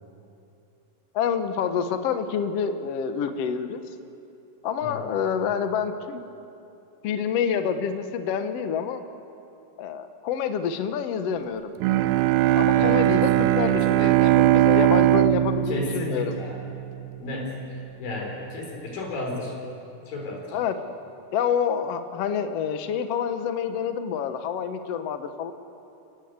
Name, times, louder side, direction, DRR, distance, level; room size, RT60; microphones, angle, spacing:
voice 1, 1.1-3.8 4.6-6.2 7.0-9.0 9.8-11.7 12.6-16.3 20.5-20.8 21.3-25.5, left 7 dB, 65° left, 8 dB, 1.7 m, -27 dB
voice 2, 4.8-5.1 12.7-14.1 15.7-16.6 17.2-19.6 20.1-20.6, left 2 dB, 80° left, 0 dB, 6.0 m, -34 dB
Bowed string instrument, 11.8-17.1, right 14 dB, 85° right, 2.5 m, -20 dB
29.0 x 17.5 x 8.0 m, 2.8 s
omnidirectional pair, 4.0 m